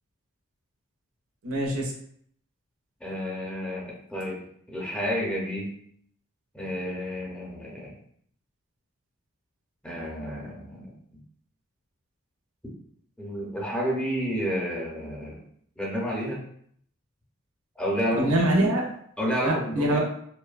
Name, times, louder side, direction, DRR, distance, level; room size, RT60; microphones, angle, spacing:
voice 1, 1.4-1.9 18.1-18.9 19.4-20.0, right 1 dB, 80° right, -1 dB, 0.6 m, -24 dB
voice 2, 3.0-4.4 4.7-5.7 6.5-7.9 9.8-10.9 13.2-15.4 15.8-16.4 17.8-18.4 19.2-20.0, equal, 5° left, -5 dB, 0.6 m, -30 dB
2.7 x 2.1 x 2.3 m, 0.63 s
head